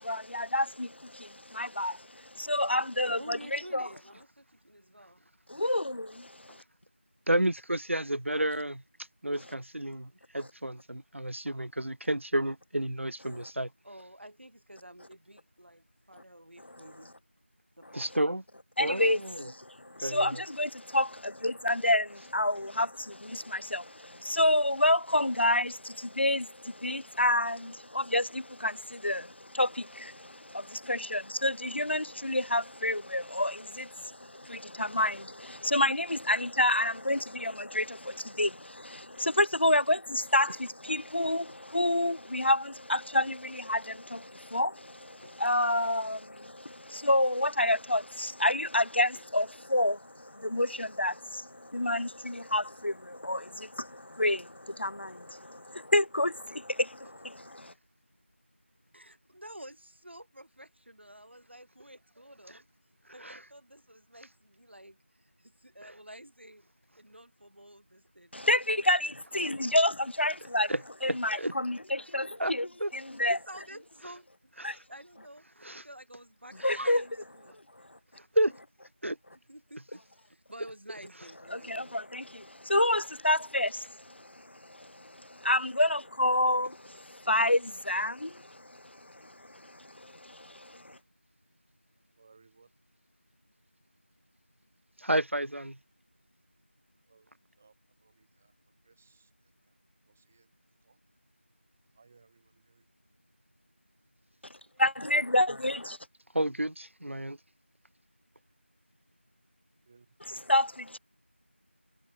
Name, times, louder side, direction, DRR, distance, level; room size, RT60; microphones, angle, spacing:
voice 1, 0.0-3.9 5.5-6.6 18.8-57.7 68.3-70.7 71.0-73.4 74.6-74.8 76.6-77.1 77.4-77.5 81.5-91.0 104.8-106.0 110.2-111.0, left 1 dB, 60° left, 0.5 m, -29 dB
voice 2, 3.2-5.2 13.8-17.1 17.8-18.1 18.8-19.1 58.9-62.6 63.1-66.6 67.0-68.4 69.3-69.7 73.3-74.5 74.9-77.6 79.5-82.0, right 1 dB, 60° right, 3.9 m, -50 dB
voice 3, 7.3-8.8 9.2-13.7 17.9-18.4 18.8-19.5 20.0-20.4 63.2-63.4 65.8-65.9 70.7-71.5 72.4-72.5 72.8-72.9 74.6-74.8 75.6-75.8 76.6-77.0 78.3-78.5 79.0-79.2 95.0-95.8 106.3-107.4, right 1 dB, 75° right, 1.0 m, -31 dB
voice 4, 92.1-92.7 97.1-97.3 97.6-97.7 98.0-98.5 98.8-99.3 100.1-100.5 100.8-101.0 101.9-102.9 109.9-110.4, right 4 dB, 5° right, 2.6 m, -63 dB
figure-of-eight pair, 175°, 7 cm